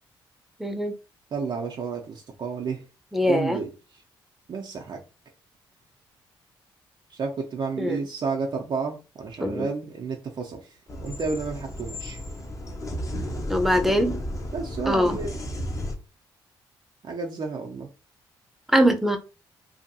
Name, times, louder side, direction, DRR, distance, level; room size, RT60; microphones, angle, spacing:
voice 1, 0.6-0.9 3.1-3.6 7.8-8.0 9.4-9.7 13.5-14.2 14.9-15.2 18.7-19.2, equal, 5° right, 0.7 m, -22 dB
voice 2, 1.3-2.8 3.2-3.7 4.5-5.0 7.1-10.6 11.0-12.2 14.5-15.4 17.0-17.9, right 4 dB, 50° right, 0.5 m, -31 dB
sound 1, 10.9-15.9, left 1 dB, 30° left, 0.8 m, -33 dB
2.7 x 2.5 x 2.7 m
supercardioid pair, 55°, 10 cm